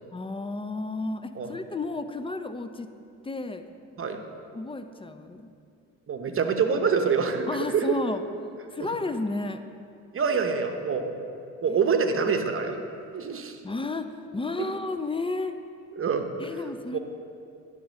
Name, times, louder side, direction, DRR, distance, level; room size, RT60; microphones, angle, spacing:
voice 1, 0.1-2.9 3.2-3.7 3.9-4.2 4.5-5.5 7.5-8.2 8.7-9.6 11.7-11.8 13.6-14.1 14.3-15.6 16.4-17.0, left 3 dB, 15° left, 9 dB, 0.4 m, -32 dB
voice 2, 6.1-7.5 7.7-8.0 8.8-8.9 10.1-11.1 11.6-12.8 13.1-13.6 14.6-14.7 16.0-16.3 16.9-17.0, right 5 dB, 35° right, 5 dB, 0.9 m, -25 dB
9.9 x 3.7 x 6.3 m, 2.5 s
supercardioid pair, 65°, 37 cm